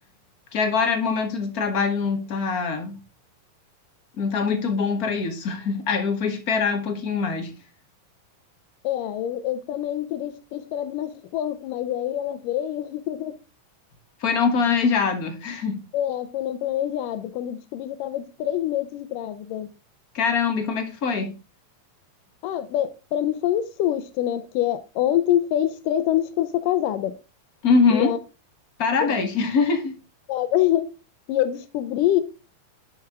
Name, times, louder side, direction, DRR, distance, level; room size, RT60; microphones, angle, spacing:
voice 1, 0.5-3.0 4.2-7.5 14.2-15.8 20.1-21.3 27.6-28.1 28.8-30.0, left 5 dB, 55° left, 1.0 m, -23 dB
voice 2, 8.8-13.4 15.9-19.7 22.4-27.2 27.9-28.2 29.0-29.1 30.3-30.9 31.3-32.2, left 12 dB, 75° left, 2.3 m, -25 dB
10.5 x 6.1 x 3.5 m
omnidirectional pair, 4.0 m